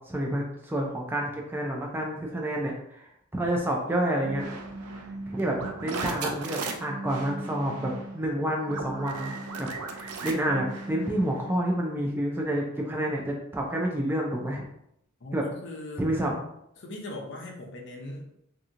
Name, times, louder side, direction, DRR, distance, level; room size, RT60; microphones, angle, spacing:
voice 1, 0.1-4.5 5.3-5.5 5.8-9.3 9.6-14.6 15.3-15.4 16.0-16.3, right 1 dB, 10° right, -1 dB, 0.3 m, -29 dB
sound 1, 4.2-11.5, right 3 dB, 90° right, 0.4 m, -36 dB
voice 2, 15.2-16.1 16.8-18.3, left 1 dB, 55° left, 1 dB, 0.5 m, -39 dB
2.7 x 2.6 x 2.4 m, 0.77 s
head